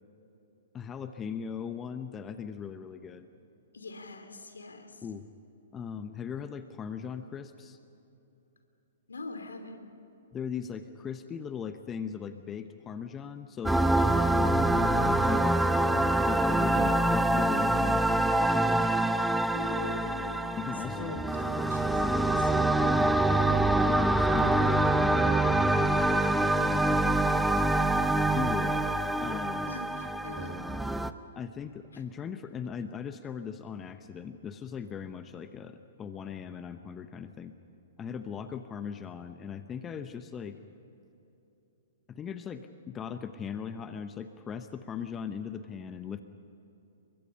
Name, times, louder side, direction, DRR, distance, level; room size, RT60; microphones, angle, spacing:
voice 1, 0.7-3.3 5.0-5.3 5.7-7.8 10.3-15.7 16.3-18.9 20.5-21.2 22.9-23.4 23.8-25.3 26.6-27.1 28.0-28.9 29.2-29.7 31.3-37.5 38.0-40.6 42.1-46.2, left 7 dB, 20° left, 9 dB, 1.0 m, -39 dB
voice 2, 3.7-5.1 9.1-9.9 17.3-17.8 19.5-20.5 20.9-22.5 29.7-30.6 31.9-32.0, left 3 dB, 75° left, 7 dB, 3.2 m, -43 dB
sound 1, 13.6-31.1, right 1 dB, 5° right, 0.8 m, -25 dB
29.5 x 23.5 x 5.6 m, 3.0 s
figure-of-eight pair, 115°, 0 cm